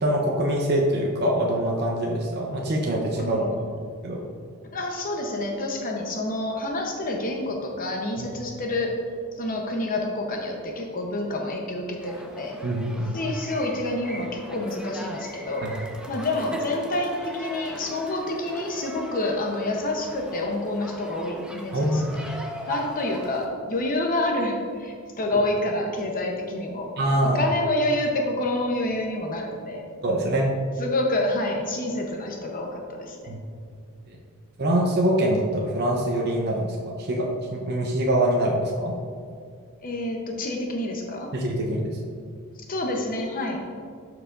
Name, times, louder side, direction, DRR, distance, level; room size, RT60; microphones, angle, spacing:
voice 1, 0.0-3.7 4.0-4.2 8.2-8.3 12.6-13.1 21.7-22.2 27.0-27.4 30.0-30.5 33.3-33.4 34.1-34.2 34.6-38.9 41.3-41.9, right 1 dB, 50° right, -1 dB, 0.7 m, -24 dB
voice 2, 3.2-3.6 4.7-9.0 9.4-12.6 13.1-15.7 16.1-22.2 22.7-26.9 27.2-29.8 30.8-33.3 39.8-41.3 42.7-43.6, left 1 dB, 40° left, 1 dB, 0.8 m, -28 dB
sound 1, 12.0-23.5, equal, 5° right, 0.6 m, -40 dB
12.0 x 4.8 x 2.5 m, 2.3 s
head